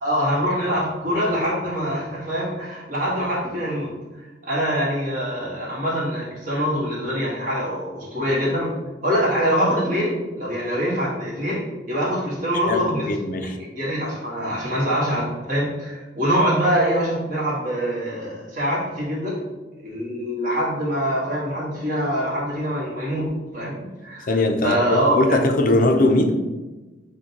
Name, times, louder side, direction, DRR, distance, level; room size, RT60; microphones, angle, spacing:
voice 1, 0.0-3.9 4.4-8.7 9.0-13.1 13.4-19.4 19.8-24.3 24.6-25.4, equal, 45° right, -6 dB, 1.4 m, -24 dB
voice 2, 12.7-13.6 24.3-26.4, left 2 dB, 45° left, 4 dB, 0.4 m, -20 dB
6.2 x 2.2 x 2.8 m, 1.2 s
head